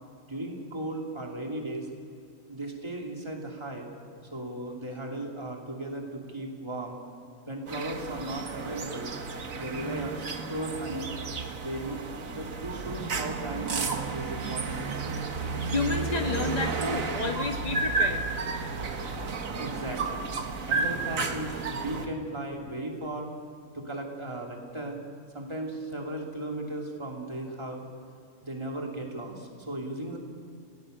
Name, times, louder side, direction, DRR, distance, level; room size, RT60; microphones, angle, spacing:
voice 1, 0.3-1.9 2.5-3.9 4.3-7.0 7.5-9.1 9.5-10.2 10.5-11.1 11.5-15.2 19.6-20.3 20.6-23.3 23.7-25.0 25.3-27.9 28.4-30.2, right 1 dB, 20° right, 0 dB, 2.9 m, -36 dB
sound 1, 7.7-22.1, right 4 dB, 85° right, 1.9 m, -32 dB
voice 2, 15.7-18.2, left 2 dB, 30° left, 3 dB, 1.9 m, -30 dB
30.0 x 18.5 x 6.7 m, 2.3 s
omnidirectional pair, 1.4 m